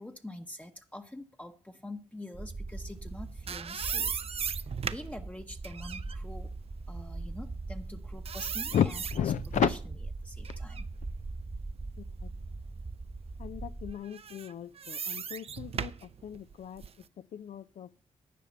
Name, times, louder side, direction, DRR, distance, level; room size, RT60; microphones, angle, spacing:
voice 1, 0.0-4.5 4.8-6.5 6.9-8.7 9.7-9.8 10.2-10.9, left 1 dB, 10° left, 0.9 m, -45 dB
sound 1, 2.3-13.9, right 3 dB, 35° right, 1.1 m, -41 dB
sound 2, 3.0-7.9 8.3-10.0 10.4-12.4 12.9-13.0 14.0-17.1, right 7 dB, 50° right, 0.5 m, -38 dB
voice 2, 8.7-9.7 12.2-12.3 13.4-16.8 17.3-17.9, left 9 dB, 75° left, 0.4 m, -33 dB
10.5 x 5.0 x 7.8 m
cardioid pair, 70°, 13 cm